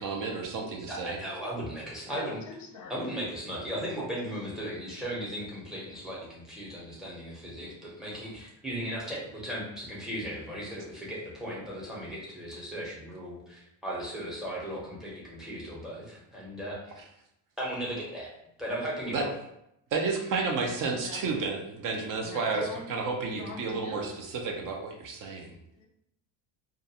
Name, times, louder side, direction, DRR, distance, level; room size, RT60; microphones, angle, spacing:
voice 1, 0.0-1.2 19.1-19.2 19.9-22.6 22.9-25.5, right 4 dB, 45° right, 1 dB, 0.5 m, -31 dB
voice 2, 0.9-2.4 2.9-16.8 17.6-18.3 18.6-19.3, equal, ahead, -6 dB, 0.7 m, -36 dB
voice 3, 2.1-3.2 21.0-21.2 22.2-22.9 23.3-24.1 25.2-25.4 25.7-25.9, left 3 dB, 40° left, 1 dB, 0.5 m, -43 dB
2.4 x 2.2 x 2.7 m, 0.79 s
cardioid pair, 125°, 49 cm